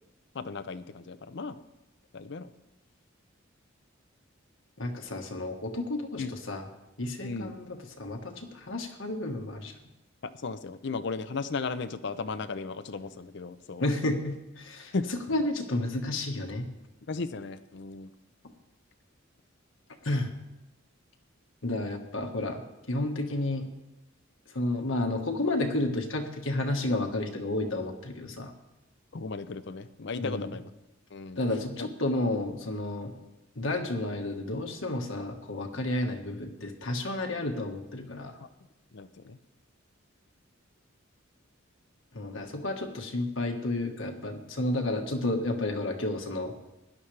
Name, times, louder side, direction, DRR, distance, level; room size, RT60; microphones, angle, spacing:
voice 1, 0.3-1.6 2.1-2.5 6.2-6.4 7.2-7.5 10.2-13.8 14.1-14.2 14.9-15.1 17.1-18.1 29.1-30.7 31.1-31.4 31.8-31.9 38.4-38.5 38.9-39.4, left 4 dB, 60° left, 12 dB, 0.6 m, -35 dB
voice 2, 4.8-6.6 7.0-9.7 13.8-14.9 15.3-16.7 20.0-20.3 21.6-22.6 22.9-23.7 24.5-28.5 30.2-30.5 31.4-33.1 33.6-38.3 42.1-46.5, left 2 dB, 80° left, 3 dB, 1.5 m, -31 dB
16.5 x 11.0 x 3.3 m, 0.97 s
head